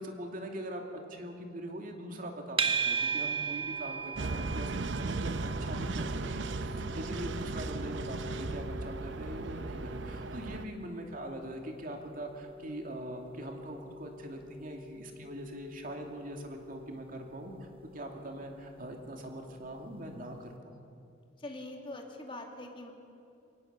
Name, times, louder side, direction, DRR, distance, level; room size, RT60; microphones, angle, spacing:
voice 1, 0.0-20.8, right 1 dB, 50° right, 3 dB, 2.5 m, -42 dB
sound 1, 2.6-19.8, right 5 dB, 30° right, 1.0 m, -40 dB
sound 2, 4.2-10.7, right 3 dB, 75° right, 0.7 m, -36 dB
voice 2, 21.4-22.9, left 1 dB, 30° left, 1 dB, 2.5 m, -43 dB
23.0 x 18.5 x 6.8 m, 2.7 s
head